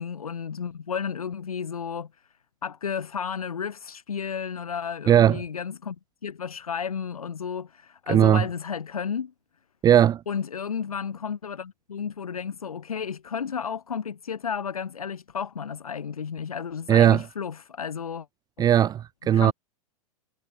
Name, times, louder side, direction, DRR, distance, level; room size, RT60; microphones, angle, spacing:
voice 1, 0.0-2.1 2.6-6.0 6.2-9.3 10.3-18.3 18.6-18.7 19.3-19.5, left 7 dB, 75° left, 2.0 m, -32 dB
voice 2, 5.1-5.4 8.1-8.4 9.8-10.2 16.9-17.2 18.6-19.5, right 10 dB, 20° right, 0.6 m, -18 dB
figure-of-eight pair, 100°, 19 cm